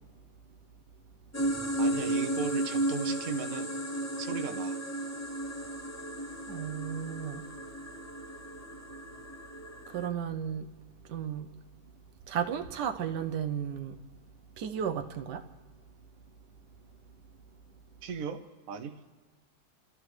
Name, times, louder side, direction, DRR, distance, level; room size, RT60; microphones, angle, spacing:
sound 1, 1.3-10.1, right 1 dB, 20° left, 0.4 m, -34 dB
voice 1, 1.8-3.7 4.2-4.8 18.0-19.2, right 6 dB, 60° right, 1.1 m, -37 dB
voice 2, 6.5-7.4 9.9-10.7 11.1-11.5 12.3-14.0 14.6-15.5, right 8 dB, 80° right, 1.3 m, -34 dB
30.0 x 13.5 x 3.2 m
omnidirectional pair, 1.8 m